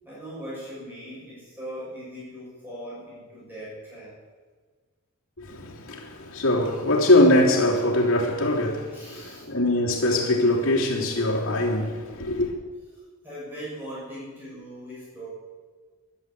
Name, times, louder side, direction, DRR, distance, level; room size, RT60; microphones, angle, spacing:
voice 1, 0.0-4.1 8.9-9.5 12.9-15.3, equal, 10° right, 6.6 m, -40 dB
voice 2, 5.4-12.5, left 1 dB, 65° left, 3.4 m, -22 dB
13.0 x 11.5 x 8.4 m
head